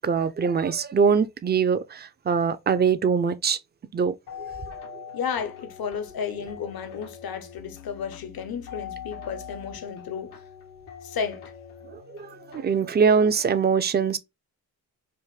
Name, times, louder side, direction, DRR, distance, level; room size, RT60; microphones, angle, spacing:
voice 1, 0.0-3.6 3.9-4.5 4.9-5.0 11.9-12.2 12.5-14.2, right 6 dB, 25° right, 0.5 m, -23 dB
sound 1, 4.3-13.1, left 8 dB, 85° left, 1.2 m, -43 dB
voice 2, 5.1-10.4 11.0-11.4, left 6 dB, 60° left, 0.9 m, -33 dB
4.8 x 2.6 x 2.3 m
supercardioid pair, 55°, 40 cm